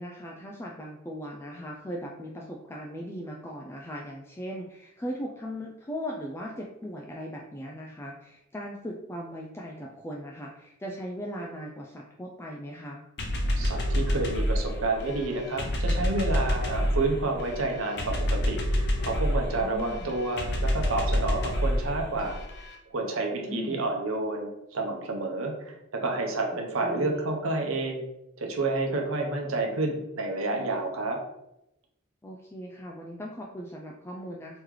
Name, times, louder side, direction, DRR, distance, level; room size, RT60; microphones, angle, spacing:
voice 1, 0.0-13.0 16.8-16.9 19.6-20.2 23.3-23.9 26.8-27.2 32.2-34.6, equal, 10° left, -1 dB, 0.3 m, -38 dB
sound 1, 13.2-22.7, equal, 55° left, 0.6 m, -28 dB
voice 2, 13.6-22.4 22.9-28.0 28.4-31.2, right 2 dB, 80° right, 1 dB, 0.8 m, -30 dB
3.1 x 3.0 x 3.7 m, 0.85 s
head